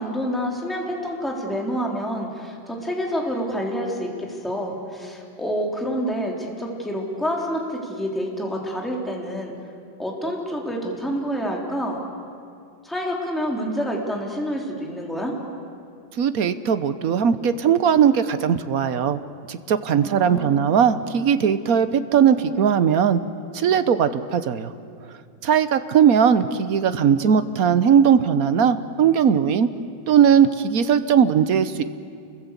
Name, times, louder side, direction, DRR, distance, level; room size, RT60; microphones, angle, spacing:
voice 1, 0.0-9.5 10.0-12.0 12.8-15.3 20.0-20.7, equal, ahead, -1 dB, 3.3 m, -28 dB
voice 2, 16.2-19.2 19.5-23.2 23.5-24.7 25.4-29.7 30.1-31.8, right 8 dB, 55° right, 12 dB, 1.2 m, -19 dB
29.0 x 21.5 x 8.2 m, 2.4 s
omnidirectional pair, 2.2 m